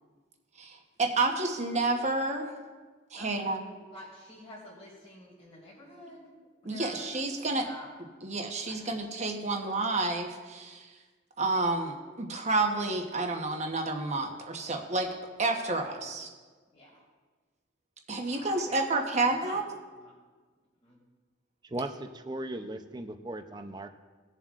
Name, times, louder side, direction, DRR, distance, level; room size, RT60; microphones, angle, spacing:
voice 1, 0.6-2.5 3.1-3.6 6.6-7.6 8.2-10.9 11.4-15.1 15.4-16.3 18.1-19.6, right 2 dB, 40° right, 3 dB, 1.0 m, -30 dB
voice 2, 3.1-6.3 6.6-7.9 8.6-9.2 15.8-16.1 16.7-17.0 18.2-18.8 19.4-19.6 19.9-20.1 20.8-21.0, equal, 30° left, -8 dB, 2.5 m, -49 dB
voice 3, 21.6-23.9, right 1 dB, 25° right, 7 dB, 0.6 m, -37 dB
19.5 x 7.2 x 2.5 m, 1.4 s
head